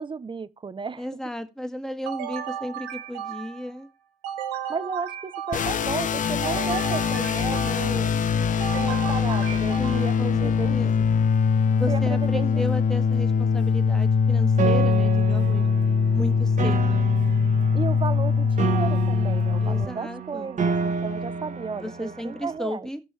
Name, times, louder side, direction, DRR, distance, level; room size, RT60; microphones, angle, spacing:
voice 1, 0.0-1.1 4.7-8.3 8.7-10.8 11.9-12.6 17.7-22.9, right 5 dB, 30° right, 0.7 m, -33 dB
voice 2, 1.0-3.9 9.8-11.1 11.7-15.6 16.1-17.1 19.6-20.5 21.7-23.0, left 1 dB, 5° left, 1.7 m, -34 dB
sound 1, 2.1-3.7 4.2-5.9 6.4-8.1 8.6-10.3, right 9 dB, 85° right, 1.1 m, -34 dB
sound 2, 5.5-19.8, left 6 dB, 50° left, 0.7 m, -22 dB
Piano, 14.6-22.6, right 6 dB, 50° right, 1.5 m, -30 dB
16.0 x 6.2 x 3.2 m
supercardioid pair, 60°, 17 cm